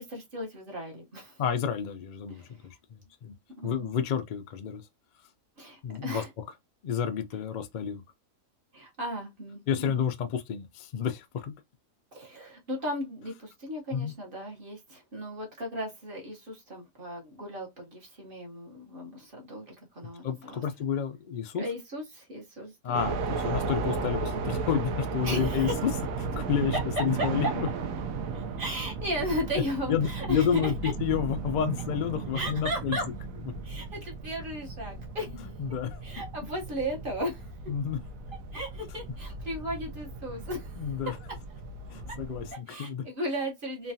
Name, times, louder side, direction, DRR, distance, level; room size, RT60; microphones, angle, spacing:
voice 1, 0.0-1.4 2.3-2.6 3.6-3.9 5.6-6.3 8.7-10.0 12.1-20.6 21.6-23.0 25.2-25.8 26.7-26.8 27.2-27.3 28.3-30.9 32.3-33.1 33.6-35.3 36.0-37.5 38.5-40.7 41.0-41.4 42.1-42.2 42.7-43.9, equal, 45° right, 1.0 m, -35 dB
voice 2, 1.4-3.3 3.6-4.8 5.8-6.2 6.8-8.0 9.7-11.5 13.9-14.1 20.2-21.7 22.8-25.9 26.3-27.7 29.9-33.0 33.4-33.6 35.6-36.0 37.7-38.0 40.8-41.2 41.9-43.0, left 8 dB, 70° left, 0.4 m, -30 dB
sound 1, 22.9-42.5, right 4 dB, 80° right, 1.0 m, -35 dB
3.1 x 2.3 x 2.6 m
omnidirectional pair, 1.4 m